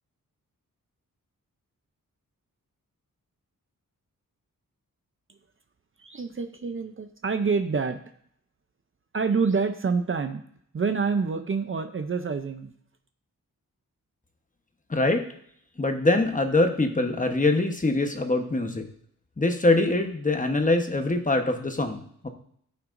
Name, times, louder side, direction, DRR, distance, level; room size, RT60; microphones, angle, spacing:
voice 1, 6.0-8.0 9.1-10.4 10.7-12.7, right 5 dB, 40° right, 8 dB, 0.5 m, -27 dB
voice 2, 14.9-15.2 15.8-18.9 19.4-22.3, left 2 dB, 25° left, 5 dB, 1.0 m, -23 dB
14.0 x 5.9 x 2.5 m, 0.65 s
wide cardioid pair, 120°, 34 cm